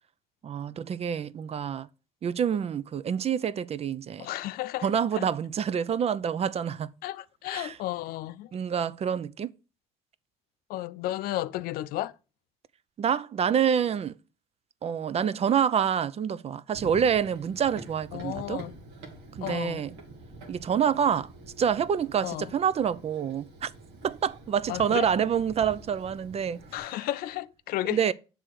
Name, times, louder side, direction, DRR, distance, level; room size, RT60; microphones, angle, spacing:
voice 1, 0.4-1.9 2.2-4.3 4.8-6.9 7.5-7.8 8.5-9.5 13.0-14.2 14.8-18.6 19.4-20.0 20.5-21.3 21.6-23.7 24.0-26.8 27.9-28.1, right 8 dB, 40° right, 0.5 m, -27 dB
voice 2, 4.2-4.9 7.0-8.5 10.7-12.1 18.1-18.7 19.4-19.8 22.2-22.5 24.7-25.1 26.7-28.0, left 15 dB, 65° left, 0.4 m, -33 dB
Run, 16.7-26.8, right 2 dB, 85° right, 1.4 m, -47 dB
7.4 x 3.4 x 6.2 m
hypercardioid pair, 60°, 16 cm